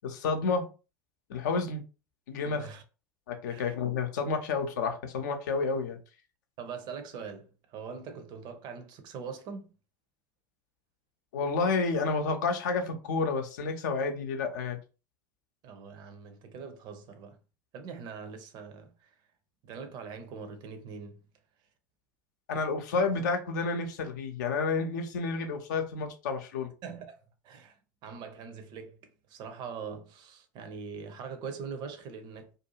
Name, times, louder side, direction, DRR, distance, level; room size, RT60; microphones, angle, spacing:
voice 1, 0.0-0.6 1.3-1.8 2.3-2.7 3.3-6.0 11.3-14.8 22.5-26.7, left 4 dB, 60° left, 0.6 m, -30 dB
voice 2, 2.4-2.8 3.5-3.7 6.6-9.8 15.6-17.4 17.7-19.2 19.6-21.2 26.8-32.6, right 6 dB, 45° right, 0.6 m, -42 dB
2.6 x 2.3 x 2.8 m
figure-of-eight pair, 75°, 11 cm